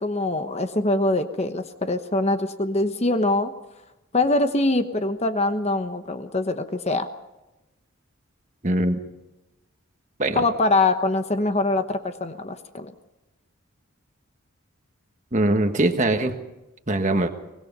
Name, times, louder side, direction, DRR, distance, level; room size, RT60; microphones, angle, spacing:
voice 1, 0.0-3.5 4.1-7.1 10.3-12.9, left 2 dB, 30° left, 8 dB, 1.1 m, -23 dB
voice 2, 8.6-9.0 10.2-10.4 15.3-16.3 16.9-17.3, right 1 dB, 35° right, 6 dB, 1.5 m, -21 dB
24.0 x 20.0 x 5.5 m, 0.99 s
head